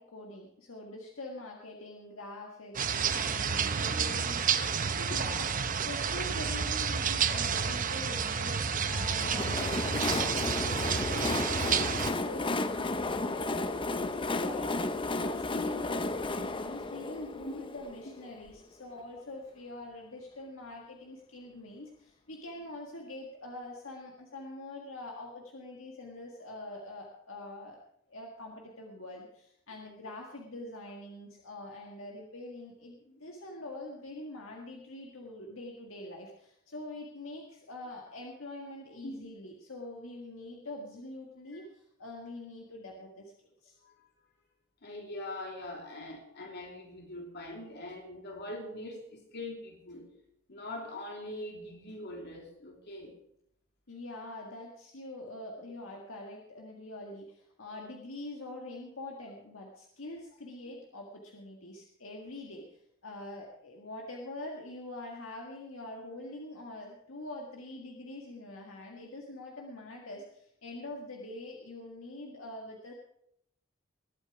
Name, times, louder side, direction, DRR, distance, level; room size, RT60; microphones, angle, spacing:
voice 1, 0.0-27.8 28.1-43.8 53.9-72.9, left 2 dB, 75° left, 0 dB, 1.8 m, -44 dB
sound 1, 2.7-12.1, right 6 dB, 40° right, 0.8 m, -30 dB
Train, 8.9-18.6, left 2 dB, 25° left, 0.7 m, -33 dB
voice 2, 44.8-50.1 50.5-53.2, left 1 dB, 55° left, 1 dB, 3.1 m, -42 dB
20.5 x 8.6 x 4.8 m, 0.73 s
head